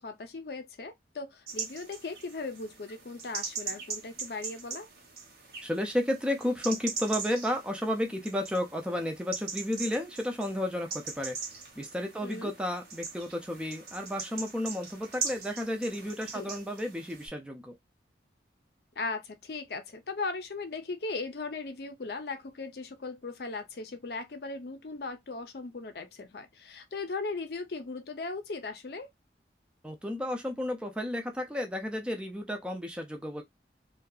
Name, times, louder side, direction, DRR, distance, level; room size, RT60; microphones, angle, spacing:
voice 1, 0.0-4.9 12.2-12.5 16.3-16.5 19.0-29.1, left 3 dB, 65° left, 0.5 m, -38 dB
sound 1, 1.5-17.3, right 5 dB, 60° right, 1.0 m, -41 dB
voice 2, 5.6-11.4 11.8-17.7 29.8-33.4, left 1 dB, 5° right, 0.4 m, -32 dB
2.6 x 2.3 x 2.3 m
head